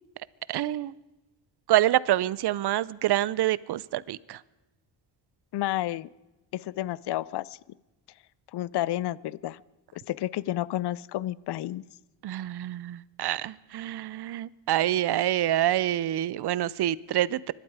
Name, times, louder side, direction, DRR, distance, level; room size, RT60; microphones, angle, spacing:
voice 1, 0.5-0.9 1.7-4.4 12.2-17.5, right 13 dB, 60° right, 20 dB, 0.6 m, -26 dB
voice 2, 5.5-6.1 6.5-7.6 8.5-9.6 9.9-11.8, left 14 dB, 65° left, 22 dB, 0.5 m, -31 dB
24.5 x 12.0 x 4.8 m, 1.0 s
cardioid pair, 100°, 45 cm